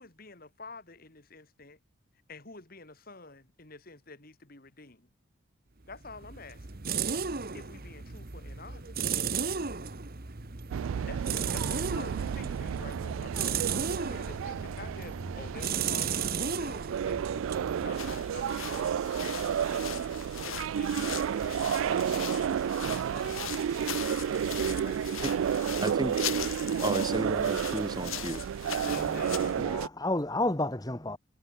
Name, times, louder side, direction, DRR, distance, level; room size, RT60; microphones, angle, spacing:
voice 1, 0.0-1.8 2.3-5.1 5.9-6.7 7.5-9.1 11.1-24.2 24.8-25.2 28.8-29.6, left 3 dB, 45° left, 2.4 m, -49 dB
sound 1, 5.9-18.6, right 6 dB, 45° right, 1.2 m, -35 dB
sound 2, 10.7-29.9, right 8 dB, 75° right, 0.3 m, -31 dB
voice 2, 10.8-11.1 12.6-12.9 29.6-31.2, left 2 dB, 20° left, 1.4 m, -32 dB
sound 3, 17.8-29.6, left 10 dB, 80° left, 2.5 m, -40 dB
voice 3, 25.8-26.2 26.8-28.4 28.8-29.3, right 1 dB, 20° right, 2.5 m, -33 dB
head